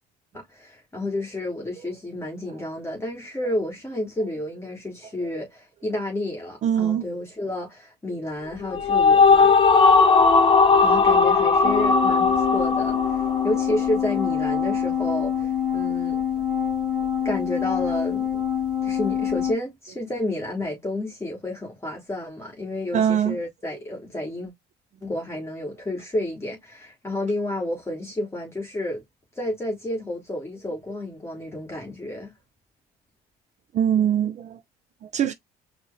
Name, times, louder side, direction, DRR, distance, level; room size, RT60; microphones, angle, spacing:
voice 1, 0.3-9.5 10.8-16.2 17.2-18.4 18.8-24.5 25.0-29.0 29.3-32.3, left 1 dB, 15° left, 1.4 m, -30 dB
voice 2, 6.6-7.1 22.9-23.4 33.7-34.6 35.0-35.3, right 9 dB, 45° right, 0.4 m, -22 dB
sound 1, 8.5-14.0, left 4 dB, 30° left, 0.7 m, -18 dB
sound 2, 11.6-19.5, left 8 dB, 5° right, 1.1 m, -25 dB
4.4 x 2.0 x 3.2 m
cardioid pair, 110°, 17 cm